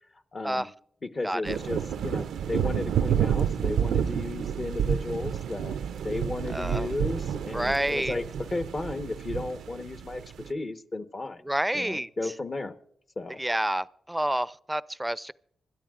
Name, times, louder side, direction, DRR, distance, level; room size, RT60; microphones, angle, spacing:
voice 1, 0.3-0.7 1.1-5.8 6.0-8.2 8.5-11.4 11.7-12.7 13.2-13.4, left 2 dB, 45° left, 1.1 m, -34 dB
voice 2, 1.2-1.6 6.5-6.9 7.5-8.2 11.5-12.1 13.4-15.3, right 1 dB, 10° right, 0.5 m, -29 dB
sound 1, 1.4-10.5, right 8 dB, 85° right, 0.4 m, -29 dB
26.5 x 12.5 x 2.5 m
supercardioid pair, 45°, 0 cm